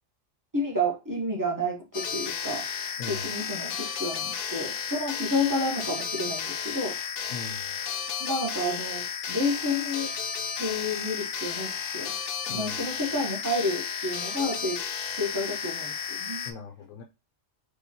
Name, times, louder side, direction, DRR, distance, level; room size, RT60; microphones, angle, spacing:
voice 1, 0.5-2.7 3.0-7.0 8.2-10.1 10.6-12.1 12.5-14.8 15.2-16.4, left 1 dB, 15° right, 0.9 m, -30 dB
sound 1, 1.9-16.5, left 7 dB, 60° left, 0.7 m, -33 dB
voice 2, 3.0-3.3 7.3-7.7 12.5-12.9 16.5-17.0, left 5 dB, 85° left, 1.0 m, -40 dB
4.7 x 2.3 x 2.7 m
omnidirectional pair, 1.3 m